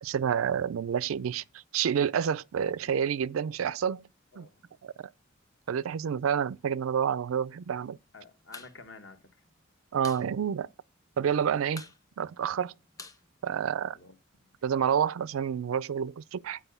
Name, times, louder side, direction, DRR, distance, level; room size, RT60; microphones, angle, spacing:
voice 1, 0.0-1.4 1.7-4.0 4.4-4.5 4.8-5.1 5.7-8.0 9.9-10.7 11.2-11.9 12.2-12.7 13.4-14.0 14.6-16.6, right 8 dB, 90° right, 0.4 m, -29 dB
voice 2, 4.3-4.7 8.1-9.2 13.9-14.5, left 3 dB, 60° left, 1.3 m, -51 dB
sound 1, 8.4-8.8 9.0-9.1 9.4-10.3 10.6-10.7 11.0-11.4 11.7-14.1, left 3 dB, 15° left, 0.7 m, -47 dB
9.0 x 4.8 x 6.7 m
head